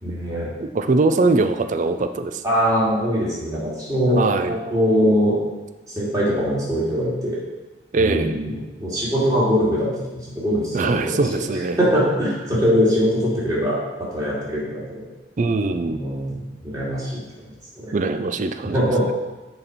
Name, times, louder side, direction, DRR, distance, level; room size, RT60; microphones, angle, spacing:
voice 1, 0.0-0.5 2.4-4.2 4.5-5.4 6.0-7.4 8.0-8.5 8.8-11.4 11.8-13.8 14.1-14.8 15.8-17.2 17.7-17.9 18.7-19.0, equal, 20° right, -8 dB, 2.4 m, -22 dB
voice 2, 0.6-2.4 4.2-4.6 7.9-8.5 10.7-11.8 15.4-16.0 17.9-19.1, right 3 dB, 45° right, 9 dB, 0.4 m, -22 dB
6.9 x 4.2 x 5.2 m, 1.1 s
head